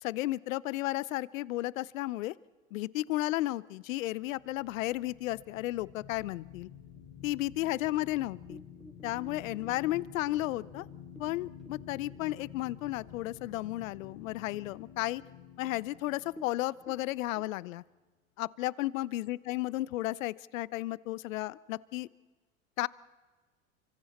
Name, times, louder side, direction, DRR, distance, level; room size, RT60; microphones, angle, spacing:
voice 1, 0.0-2.3 2.7-6.7 7.2-8.6 9.0-10.9 11.2-15.2 15.6-17.8 18.4-22.1 22.8-22.9, left 17 dB, 70° left, 21 dB, 0.7 m, -33 dB
sound 1, 4.2-17.8, left 8 dB, 55° left, 5.6 m, -50 dB
sound 2, 7.0-12.8 13.2-13.3 13.7-14.2 14.6-14.7 15.4-15.5 15.7-15.9 16.2-17.4, equal, ahead, 0.7 m, -53 dB
30.0 x 25.0 x 4.3 m, 1.3 s
hypercardioid pair, 90°, 41 cm